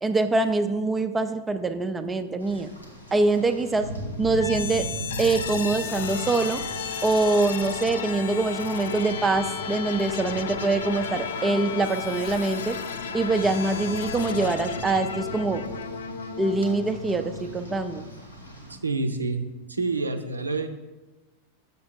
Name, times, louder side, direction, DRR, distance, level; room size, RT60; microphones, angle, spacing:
voice 1, 0.0-2.7 3.1-3.9 4.2-4.9 5.2-6.6 7.0-12.8 13.1-15.6 16.4-18.0, right 3 dB, 15° right, 9 dB, 0.5 m, -24 dB
Rain, 2.4-18.7, right 1 dB, 85° left, 1.4 m, -40 dB
sound 1, 4.4-18.2, left 6 dB, 65° left, 0.5 m, -34 dB
voice 2, 18.7-20.7, right 3 dB, 80° right, 7 dB, 0.6 m, -28 dB
6.7 x 6.7 x 4.2 m, 1.1 s
figure-of-eight pair, 90°, 0 cm